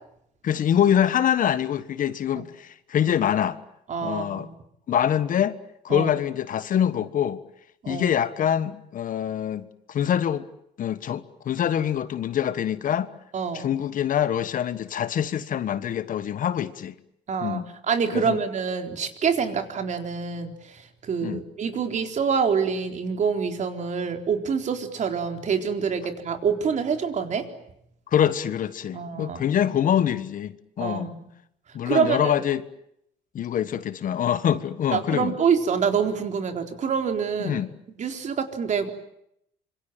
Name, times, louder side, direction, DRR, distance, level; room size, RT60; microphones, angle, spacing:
voice 1, 0.4-3.6 4.0-4.5 4.9-5.6 5.8-7.4 7.9-10.4 10.8-13.1 13.5-16.9 17.4-17.7 18.1-18.4 21.2-21.4 28.1-31.1 31.7-32.6 33.3-35.3 37.4-37.7, left 9 dB, 50° left, 1.4 m, -25 dB
voice 2, 3.9-4.5 5.9-6.1 7.8-8.1 13.3-13.7 17.3-27.5 28.9-29.4 30.8-31.3 31.9-32.3 34.9-37.6 38.0-38.9, right 6 dB, 45° right, 4.0 m, -26 dB
26.0 x 25.0 x 9.0 m
cardioid pair, 110°, 17 cm